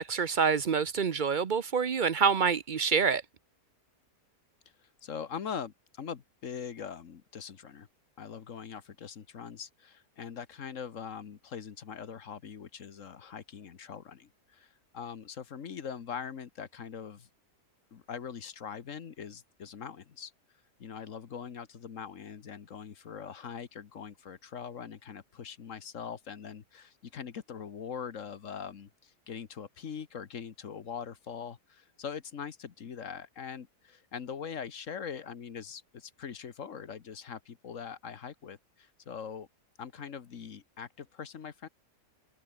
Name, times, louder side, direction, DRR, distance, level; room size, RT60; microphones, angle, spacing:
voice 1, 0.0-3.2, right 6 dB, 45° right, 0.6 m, -27 dB
voice 2, 5.0-7.9 8.2-17.3 17.9-20.3 20.8-39.5 39.8-41.7, left 7 dB, 55° left, 1.5 m, -42 dB
omnidirectional pair, 1.7 m